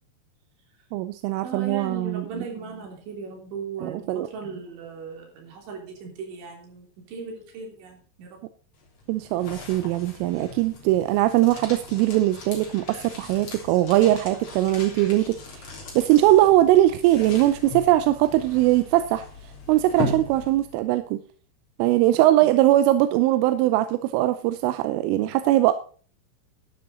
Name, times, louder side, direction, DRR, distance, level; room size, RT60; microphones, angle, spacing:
voice 1, 0.9-2.4 3.8-4.3 9.1-19.3 19.7-21.2 21.8-25.7, right 15 dB, 90° right, 11 dB, 3.2 m, -21 dB
voice 2, 1.4-8.4 22.2-22.3, right 5 dB, 70° right, 1 dB, 5.7 m, -37 dB
sound 1, 8.7-20.9, left 3 dB, 35° left, 3.9 m, -38 dB
12.5 x 11.5 x 4.0 m, 0.41 s
omnidirectional pair, 5.6 m